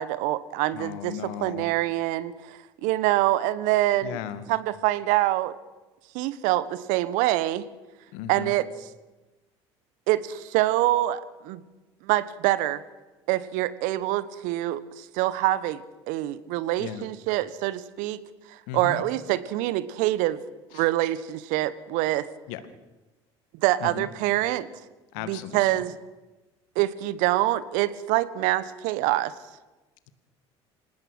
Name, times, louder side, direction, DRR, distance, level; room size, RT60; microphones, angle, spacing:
voice 1, 0.0-1.1 1.4-4.2 4.5-5.5 6.1-7.6 8.3-8.7 10.1-11.6 12.0-12.8 13.3-18.2 18.7-20.4 20.7-22.3 23.6-24.7 25.3-25.9 26.7-29.3, right 15 dB, 65° right, 16 dB, 1.3 m, -25 dB
voice 2, 0.7-1.7 4.0-4.5 8.1-8.5 16.8-17.1 18.7-19.0 20.7-20.9 22.5-22.6 23.8-24.1 25.1-25.6, left 10 dB, 65° left, 11 dB, 2.0 m, -36 dB
26.5 x 19.0 x 6.3 m, 1.1 s
hypercardioid pair, 65°, 14 cm